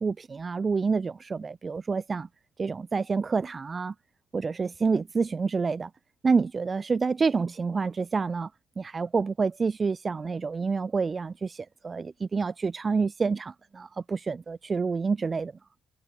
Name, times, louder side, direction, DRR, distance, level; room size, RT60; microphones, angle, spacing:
voice 1, 0.0-2.3 2.6-3.9 4.3-5.9 6.2-8.5 8.8-15.5, right 4 dB, 25° right, 0.5 m, -28 dB
cardioid pair, 165°, 0 cm